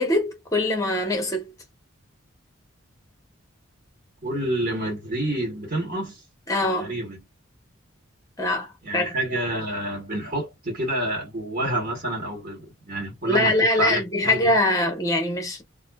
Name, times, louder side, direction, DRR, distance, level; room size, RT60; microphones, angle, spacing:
voice 1, 0.0-1.5 6.5-6.9 8.4-9.2 13.3-15.6, left 1 dB, 15° left, 0.9 m, -23 dB
voice 2, 4.2-6.2 6.6-7.2 8.8-14.6, right 1 dB, 45° right, 1.4 m, -28 dB
2.5 x 2.2 x 2.3 m
head